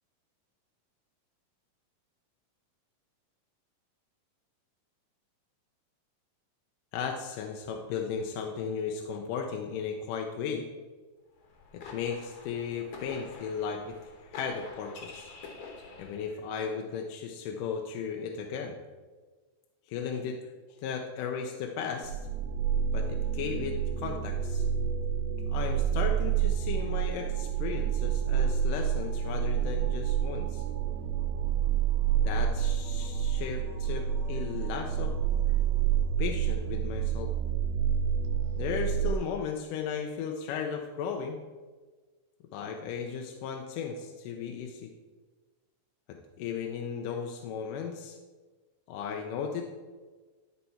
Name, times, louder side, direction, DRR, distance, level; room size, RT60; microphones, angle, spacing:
voice 1, 6.9-10.7 11.7-14.0 14.2-15.3 16.0-18.8 19.9-20.4 20.8-22.2 22.9-24.7 25.5-30.6 32.2-35.1 36.2-37.3 38.6-41.4 42.5-44.9 46.1-48.2 48.9-49.6, left 6 dB, 80° left, 3 dB, 2.2 m, -35 dB
sound 1, 11.4-16.5, left 4 dB, 60° left, 2.2 m, -47 dB
sound 2, 22.0-39.1, right 8 dB, 70° right, 1.8 m, -28 dB
12.5 x 4.5 x 4.3 m, 1.3 s
omnidirectional pair, 3.9 m